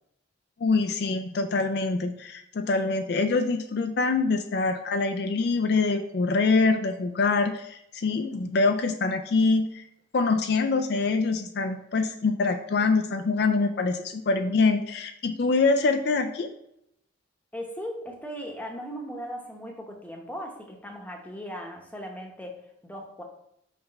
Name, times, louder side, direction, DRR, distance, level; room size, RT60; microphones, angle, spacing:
voice 1, 0.6-9.8 10.1-16.5, left 3 dB, 55° left, 6 dB, 0.4 m, -25 dB
voice 2, 17.5-23.2, equal, 10° left, 1 dB, 0.9 m, -38 dB
5.8 x 3.4 x 5.2 m, 0.76 s
head